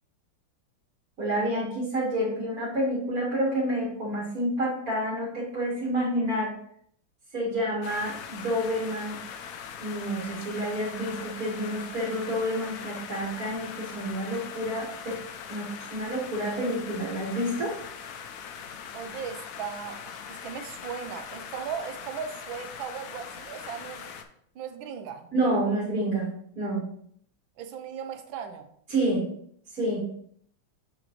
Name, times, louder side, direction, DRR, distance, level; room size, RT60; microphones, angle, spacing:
voice 1, 1.2-6.5 7.3-9.2 9.8-15.2 15.5-17.7 25.3-26.3 26.5-26.8 28.9-29.3 29.7-30.0, right 1 dB, 45° right, -5 dB, 2.2 m, -29 dB
sound 1, 7.8-24.2, left 7 dB, 70° left, 0.8 m, -41 dB
voice 2, 18.9-24.0 24.5-25.3 27.6-28.7, right 7 dB, 80° right, 7 dB, 1.5 m, -37 dB
7.2 x 5.1 x 3.1 m, 0.66 s
omnidirectional pair, 2.1 m